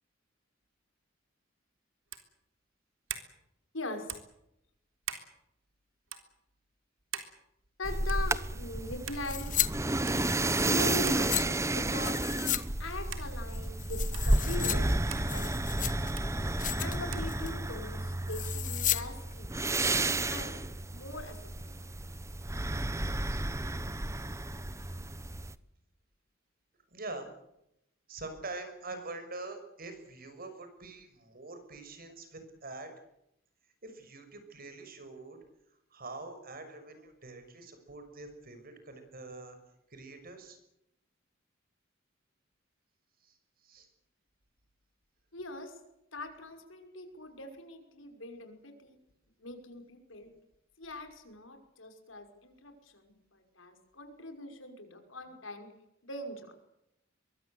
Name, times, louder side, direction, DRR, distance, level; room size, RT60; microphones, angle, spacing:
sound 1, 2.1-2.3 3.1-3.3 4.1-4.3 5.0-5.3 6.1-6.2 7.1-7.3 8.1-8.3 9.1-9.3 10.1-10.2 11.1-11.3 12.0-12.3 13.1-13.3 14.1-14.3 15.1-15.3 16.2-16.3 17.1-17.3, right 9 dB, 75° right, 3.6 m, -41 dB
voice 1, 3.7-4.2 7.8-9.5 10.6-15.5 16.8-19.6 20.3-20.6 20.9-21.4 21.6-21.9 45.3-45.8 46.1-49.0 49.4-50.3 50.8-55.7 56.0-56.5, left 2 dB, 80° left, 6 dB, 5.8 m, -41 dB
sound 2, 7.8-25.5, right 2 dB, 15° right, 0.9 m, -32 dB
sound 3, 9.2-9.7 10.0-11.4 12.0-12.6 12.9-13.0 13.5-14.8 15.1-16.1 16.5-17.0 17.3-17.6 18.3-19.0 19.3-19.4, left 12 dB, 40° left, 1.4 m, -34 dB
voice 2, 26.9-27.3 28.1-32.9 33.8-35.4 35.9-39.6 39.9-40.6 43.2-43.3 43.6-43.9, right 2 dB, 50° right, 8 dB, 6.3 m, -44 dB
24.0 x 23.0 x 8.1 m, 0.81 s
head